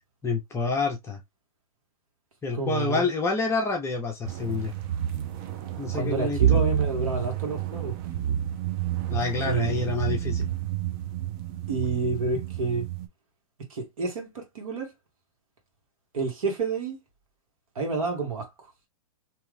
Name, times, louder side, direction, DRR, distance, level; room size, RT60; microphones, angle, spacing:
voice 1, 0.2-1.2 2.4-4.7 5.8-6.6 9.1-10.5, left 4 dB, 15° left, 0.7 m, -28 dB
voice 2, 2.5-3.0 5.9-8.0 9.5-9.8 11.7-12.9 13.7-14.9 16.1-17.0 17.7-18.5, right 3 dB, 70° right, 1.5 m, -29 dB
sound 1, 4.2-13.1, right 10 dB, 40° right, 0.6 m, -29 dB
2.8 x 2.3 x 3.3 m
hypercardioid pair, 130°, 18 cm